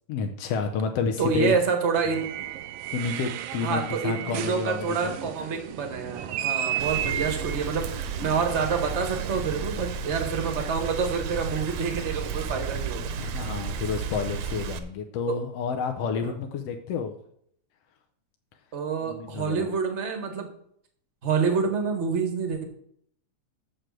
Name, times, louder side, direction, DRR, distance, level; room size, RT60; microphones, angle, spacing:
voice 1, 0.1-1.5 2.9-5.2 13.2-17.1 19.0-19.7, left 5 dB, 65° left, 4 dB, 1.7 m, -30 dB
voice 2, 1.2-2.3 3.6-13.1 15.3-15.4 16.2-16.3 18.7-20.5 21.2-22.6, right 5 dB, 35° right, 5 dB, 1.1 m, -27 dB
sound 1, 2.1-9.8, right 11 dB, 85° right, 1.3 m, -34 dB
Rain, 6.8-14.8, right 6 dB, 70° right, 2.0 m, -33 dB
7.3 x 6.5 x 7.5 m, 0.67 s
omnidirectional pair, 3.4 m